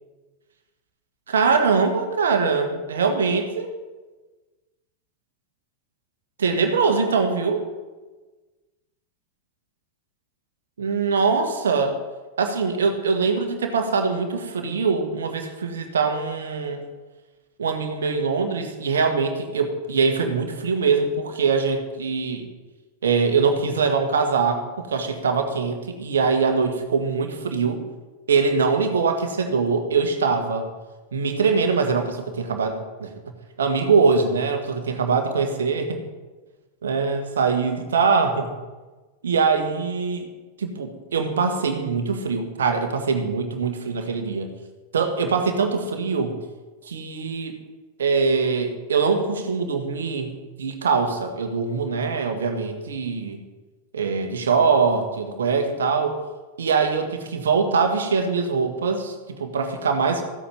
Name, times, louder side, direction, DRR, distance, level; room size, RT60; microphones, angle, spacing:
voice 1, 1.3-3.7 6.4-7.6 10.8-12.0 12.4-16.8 17.6-22.4 23.0-27.8 28.3-30.7 31.1-33.1 33.6-36.0 36.8-38.5 39.2-40.3 40.6-44.5 44.9-46.4 46.8-47.6 48.0-50.3 50.6-53.4 53.9-56.2 56.6-60.2, right 5 dB, 65° right, 5 dB, 1.7 m, -23 dB
14.5 x 8.5 x 5.8 m, 1.3 s
figure-of-eight pair, 90°, 0 cm